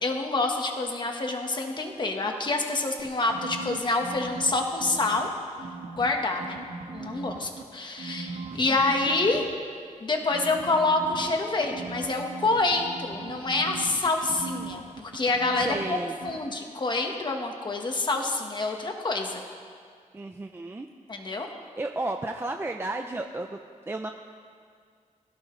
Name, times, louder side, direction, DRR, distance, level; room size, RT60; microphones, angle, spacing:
voice 1, 0.0-5.3 6.0-9.4 10.0-16.0 16.2-19.4 21.1-21.5, left 3 dB, 35° left, 3 dB, 1.4 m, -27 dB
sound 1, 3.0-5.3 5.6-7.6 8.0-9.4 10.3-15.9 16.2-16.4, right 5 dB, 80° right, 1.3 m, -39 dB
voice 2, 15.6-16.2 20.1-20.9 21.8-23.6 23.9-24.1, right 2 dB, 20° right, 4 dB, 0.5 m, -33 dB
21.5 x 16.5 x 3.2 m, 2.1 s
wide cardioid pair, 180°, 13 cm